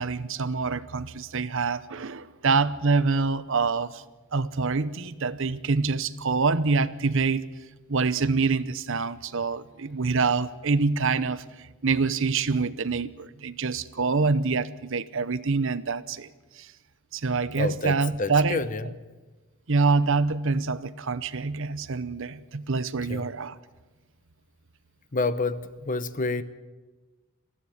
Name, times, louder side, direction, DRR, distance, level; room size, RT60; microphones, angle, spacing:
voice 1, 0.0-4.0 4.3-7.5 7.9-16.3 16.6-16.7 17.1-18.6 19.7-23.6, right 4 dB, 60° right, 16 dB, 0.8 m, -26 dB
voice 2, 17.6-19.0 23.1-23.3 25.1-26.4, left 3 dB, 35° left, 14 dB, 0.9 m, -29 dB
20.0 x 15.5 x 9.5 m, 1.2 s
head